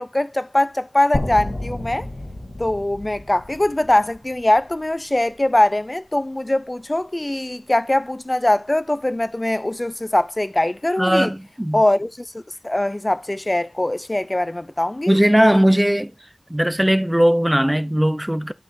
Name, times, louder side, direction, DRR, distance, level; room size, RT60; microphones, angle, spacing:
voice 1, 0.0-2.1 2.6-11.3 11.7-15.1, left 1 dB, 35° left, 0.5 m, -22 dB
sound 1, 1.1-5.2, left 1 dB, 85° left, 1.6 m, -31 dB
voice 2, 11.0-11.8 15.1-16.1 16.5-18.5, equal, 10° right, 0.7 m, -18 dB
12.0 x 5.6 x 2.7 m
wide cardioid pair, 45°, 0 cm